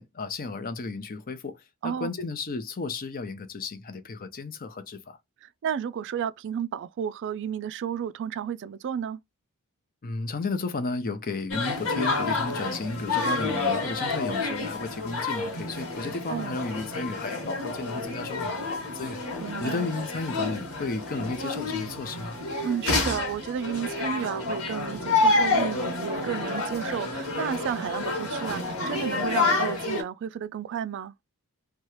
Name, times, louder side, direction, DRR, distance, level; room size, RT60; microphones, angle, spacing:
voice 1, 0.0-5.2 10.0-19.2 19.6-22.4, left 3 dB, 40° left, 0.6 m, -33 dB
voice 2, 5.4-9.2 16.3-16.5 19.4-19.9 22.6-31.1, right 8 dB, 55° right, 0.3 m, -32 dB
sound 1, 11.5-30.0, left 3 dB, 65° left, 1.2 m, -29 dB
2.9 x 2.3 x 3.0 m
head